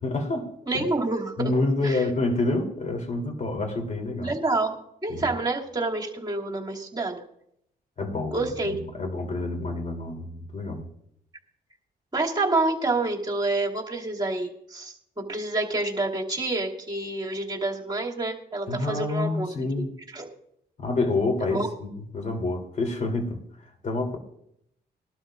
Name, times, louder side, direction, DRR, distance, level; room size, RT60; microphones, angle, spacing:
voice 1, 0.0-0.5 0.7-0.8 1.4-4.3 5.1-5.3 8.0-10.8 18.7-19.9 20.8-24.2, left 2 dB, 45° left, 2 dB, 3.5 m, -28 dB
voice 2, 0.7-1.5 1.8-2.0 4.2-4.7 5.0-7.2 8.3-8.8 12.1-19.5 20.1-20.3 21.5-21.7, right 2 dB, 25° right, -1 dB, 2.8 m, -28 dB
21.0 x 12.5 x 2.6 m, 0.75 s
cardioid pair, 75°, 17 cm